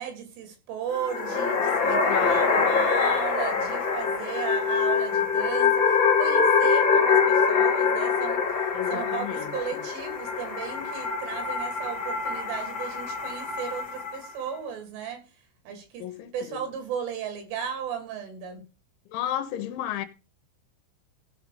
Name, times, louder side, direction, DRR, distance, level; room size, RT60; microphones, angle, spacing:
voice 1, 0.0-15.2 15.7-18.6, right 8 dB, 75° right, 5.4 m, -35 dB
sound 1, 0.9-14.3, left 5 dB, 45° left, 1.7 m, -24 dB
voice 2, 1.8-2.8 8.7-9.8 16.0-16.6 19.1-20.1, left 12 dB, 80° left, 3.5 m, -33 dB
16.0 x 5.7 x 5.1 m
omnidirectional pair, 5.6 m